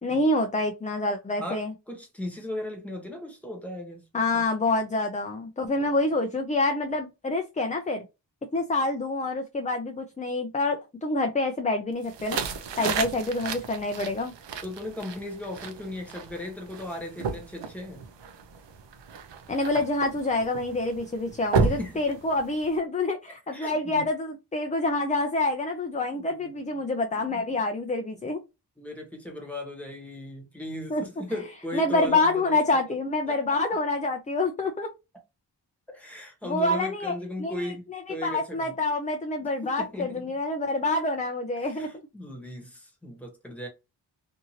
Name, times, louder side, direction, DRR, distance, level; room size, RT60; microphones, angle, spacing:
voice 1, 0.0-1.7 4.1-8.0 8.5-12.4 12.8-14.3 19.5-28.4 30.9-31.0 31.7-34.9 36.4-41.9, left 2 dB, 20° left, 0.4 m, -27 dB
voice 2, 1.4-4.0 4.3-4.4 5.8-6.0 14.6-18.0 21.5-22.2 23.5-24.0 26.1-26.8 27.1-27.5 28.8-32.8 33.3-33.4 33.7-33.8 35.9-38.7 39.4-40.2 41.6-43.7, left 1 dB, 5° left, 1.1 m, -37 dB
sound 1, 12.0-22.8, right 5 dB, 80° right, 0.6 m, -33 dB
2.8 x 2.6 x 2.7 m
wide cardioid pair, 95°, 43 cm